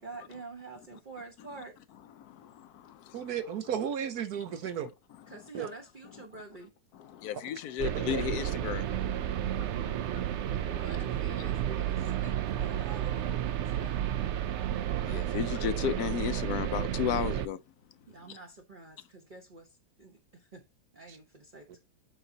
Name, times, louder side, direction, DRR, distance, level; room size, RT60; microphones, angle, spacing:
voice 1, 0.0-1.8 5.3-6.7 10.7-14.1 18.1-20.6 20.9-21.8, right 3 dB, 35° right, 1.1 m, -47 dB
voice 2, 3.1-4.9 5.5-5.7 8.1-8.2, right 8 dB, 65° right, 1.3 m, -33 dB
voice 3, 7.2-8.8 15.1-17.6, left 9 dB, 70° left, 1.1 m, -32 dB
sound 1, 7.8-17.5, right 11 dB, 85° right, 0.6 m, -32 dB
8.0 x 5.7 x 2.7 m
omnidirectional pair, 1.8 m